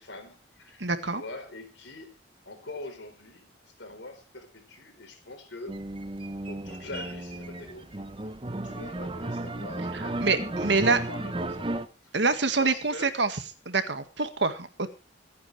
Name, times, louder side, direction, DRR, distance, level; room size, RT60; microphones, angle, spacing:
voice 1, 0.0-2.1 2.5-3.5 3.8-5.8 6.4-8.4 8.6-12.1 12.6-13.1, left 2 dB, 70° left, 4.1 m, -43 dB
voice 2, 0.8-1.2 9.9-11.0 12.1-13.3 13.7-14.7, right 3 dB, 65° right, 1.8 m, -26 dB
sound 1, 5.7-11.9, right 2 dB, 30° right, 0.8 m, -34 dB
26.5 x 8.9 x 3.3 m
head